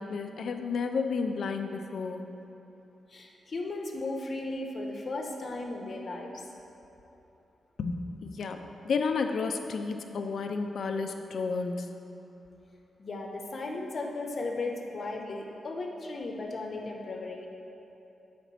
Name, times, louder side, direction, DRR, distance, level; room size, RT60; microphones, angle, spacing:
voice 1, 0.0-2.3 7.8-11.9, left 4 dB, 70° left, 6 dB, 0.5 m, -32 dB
voice 2, 3.1-6.4 13.0-17.5, left 2 dB, 50° left, 1 dB, 0.8 m, -36 dB
7.5 x 5.1 x 4.0 m, 2.9 s
cardioid pair, 85°, 0 cm